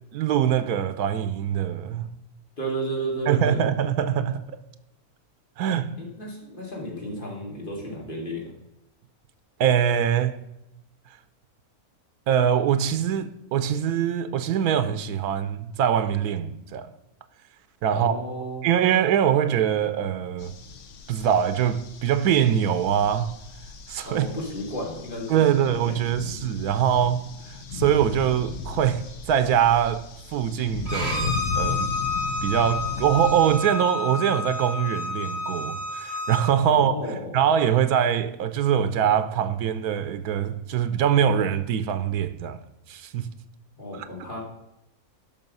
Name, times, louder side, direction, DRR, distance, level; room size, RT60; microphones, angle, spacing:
voice 1, 0.1-2.1 3.3-4.5 5.6-6.0 9.6-10.4 12.3-16.9 17.8-18.1 18.6-20.5 21.1-23.4 23.9-24.3 25.3-27.3 27.7-31.9 32.4-42.6 42.9-43.3 44.0-44.1, right 9 dB, 90° right, 1.2 m, -23 dB
voice 2, 2.6-3.6 6.0-8.5 17.9-18.7 24.0-25.9 36.7-37.3 43.8-44.4, right 1 dB, 35° left, 2.8 m, -33 dB
sound 1, 20.4-33.6, left 5 dB, 55° left, 1.1 m, -36 dB
Bowed string instrument, 30.9-36.4, left 3 dB, 60° right, 3.7 m, -30 dB
12.5 x 5.6 x 5.4 m
omnidirectional pair, 1.6 m